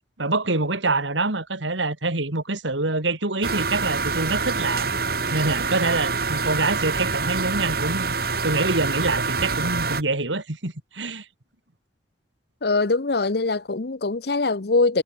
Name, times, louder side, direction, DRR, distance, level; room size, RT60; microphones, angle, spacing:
voice 1, 0.2-5.0 5.3-11.2, right 3 dB, 80° right, 3.1 m, -25 dB
sound 1, 3.4-10.0, right 4 dB, 55° right, 2.4 m, -26 dB
voice 2, 12.6-15.0, left 3 dB, 60° left, 0.8 m, -22 dB
head